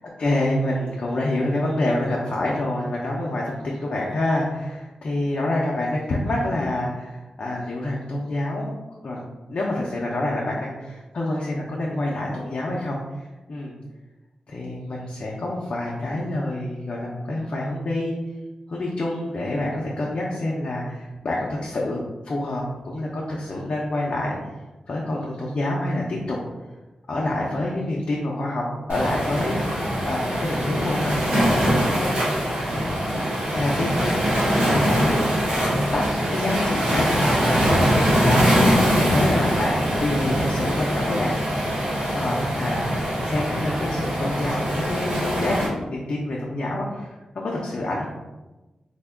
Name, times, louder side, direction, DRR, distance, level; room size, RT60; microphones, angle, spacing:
voice 1, 0.2-8.7 9.0-9.2 9.5-13.0 13.5-13.8 14.5-18.2 18.7-24.4 24.9-26.4 27.1-32.4 32.7-33.0 33.5-34.2 34.6-35.4 35.9-41.3 42.1-42.9 43.2-48.1, left 1 dB, 60° left, -4 dB, 0.5 m, -27 dB
Waves surf, 28.9-45.7, equal, 75° right, 1.3 m, -22 dB
3.4 x 2.2 x 3.5 m, 1.1 s
cardioid pair, 85°, 2 cm